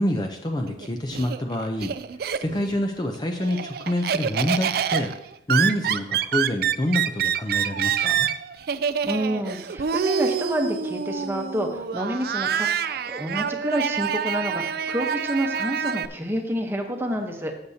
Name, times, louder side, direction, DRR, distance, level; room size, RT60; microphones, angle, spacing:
voice 1, 0.0-1.9 2.4-5.1 5.5-8.3, left 1 dB, 20° left, 4 dB, 0.5 m, -26 dB
Laughter, 0.7-2.8 3.2-16.1, right 7 dB, 55° right, 0.4 m, -26 dB
voice 2, 9.0-17.5, equal, 10° right, 3 dB, 0.9 m, -28 dB
14.5 x 7.0 x 2.8 m, 0.81 s
head